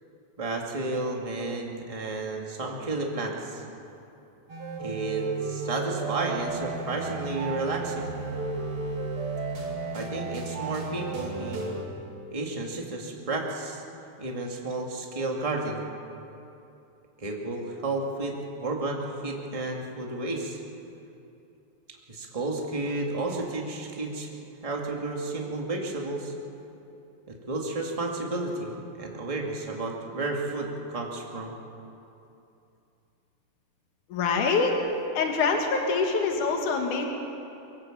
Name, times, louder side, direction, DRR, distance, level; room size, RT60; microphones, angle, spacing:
voice 1, 0.4-3.6 4.8-8.1 9.9-11.8 12.3-13.8 14.2-15.9 17.2-18.3 18.6-20.6 22.1-24.3 24.6-26.3 27.3-31.5, right 2 dB, 15° right, 0 dB, 1.8 m, -32 dB
sound 1, 4.5-11.8, right 3 dB, 45° right, 3.3 m, -34 dB
voice 2, 34.1-34.8 35.1-37.1, left 4 dB, 80° left, 3 dB, 3.2 m, -25 dB
24.0 x 16.5 x 7.5 m, 2.8 s
omnidirectional pair, 3.5 m